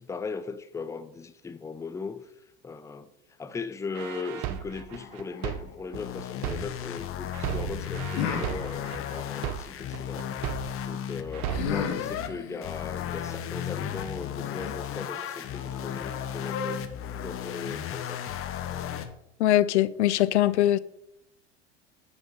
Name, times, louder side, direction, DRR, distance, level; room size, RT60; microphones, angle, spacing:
voice 1, 0.0-2.3 2.6-3.1 3.4-10.3 10.9-18.4, left 4 dB, 10° left, 0.5 m, -38 dB
sound 1, 3.9-7.0 7.3-11.0 11.3-11.9, right 12 dB, 50° right, 0.9 m, -35 dB
sound 2, 4.9-7.1 8.1-10.2 11.5-17.1, left 7 dB, 60° left, 2.0 m, -38 dB
sound 3, 5.9-12.3 12.6-19.1, left 9 dB, 40° left, 1.0 m, -35 dB
voice 2, 19.4-20.8, left 13 dB, 80° left, 0.5 m, -22 dB
9.5 x 5.1 x 5.5 m
hypercardioid pair, 80°, 34 cm